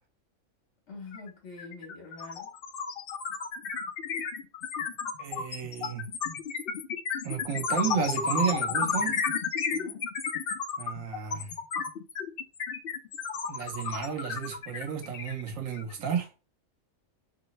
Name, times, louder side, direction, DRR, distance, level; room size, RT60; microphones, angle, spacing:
voice 1, 0.9-2.5 9.7-10.0, left 4 dB, 55° left, 1.2 m, -45 dB
sound 1, 1.1-1.3 1.6-15.9, left 5 dB, 75° left, 0.5 m, -32 dB
voice 2, 5.2-6.1 7.2-9.2 10.8-11.5 13.5-16.3, right 7 dB, 70° right, 1.1 m, -32 dB
3.2 x 2.6 x 3.0 m
omnidirectional pair, 1.5 m